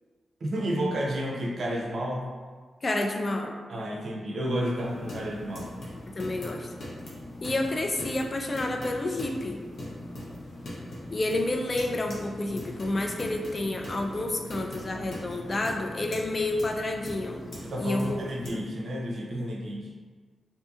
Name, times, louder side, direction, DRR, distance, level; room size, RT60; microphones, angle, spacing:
voice 1, 0.4-2.3 3.7-5.7 17.6-19.9, equal, 65° right, -1 dB, 0.5 m, -31 dB
voice 2, 2.8-3.6 6.2-6.7 7.4-9.6 11.1-17.5 17.8-18.7, left 2 dB, 40° left, 3 dB, 0.3 m, -30 dB
sound 1, 4.8-18.5, left 1 dB, 70° left, 0.8 m, -40 dB
2.5 x 2.5 x 2.4 m, 1.5 s
cardioid pair, 75°, 0 cm